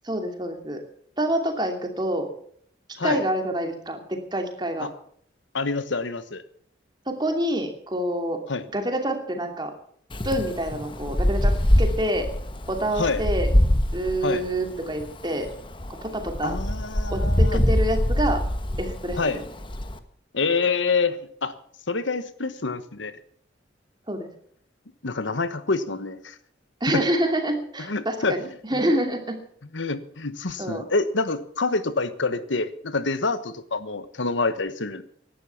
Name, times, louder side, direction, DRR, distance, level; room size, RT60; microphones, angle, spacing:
voice 1, 0.0-0.8 1.2-2.3 3.0-4.9 7.1-8.4 8.7-9.7 10.2-12.3 12.7-13.5 13.9-15.5 15.9-16.6 17.1-18.4 18.8-19.2 24.1-24.3 26.8-28.4 28.7-29.4 30.6-30.9, right 1 dB, 25° right, 5 dB, 2.7 m, -27 dB
voice 2, 5.5-6.4 8.5-8.6 13.0-13.2 14.2-14.4 16.4-17.6 19.2-19.4 20.3-21.5 21.9-23.1 25.0-26.3 26.9-27.0 27.9-28.3 29.7-35.0, left 4 dB, 75° left, 13 dB, 1.2 m, -26 dB
Wind, 10.1-20.0, equal, 25° left, 1.2 m, -24 dB
17.5 x 11.5 x 5.9 m, 0.62 s
head